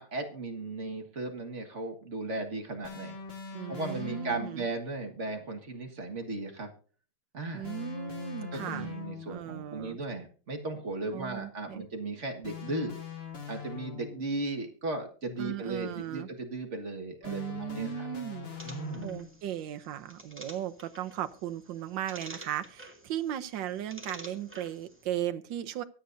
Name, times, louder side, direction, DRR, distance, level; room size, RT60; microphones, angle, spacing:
voice 1, 0.0-3.2 3.7-6.7 7.3-7.7 8.5-13.0 13.5-18.1 18.6-19.2, right 2 dB, 35° right, 3 dB, 1.8 m, -36 dB
sound 1, 2.8-4.7 7.6-9.5 12.4-14.4 17.2-19.4, left 6 dB, 30° left, 1.6 m, -42 dB
voice 2, 3.5-4.6 7.5-8.9 9.3-10.0 11.1-11.8 15.4-16.3 17.2-18.5 19.0-25.8, right 11 dB, 70° right, 10 dB, 1.5 m, -36 dB
sound 2, 18.6-25.0, right 1 dB, 5° right, 1.8 m, -50 dB
23.5 x 8.0 x 2.6 m, 0.40 s
omnidirectional pair, 2.2 m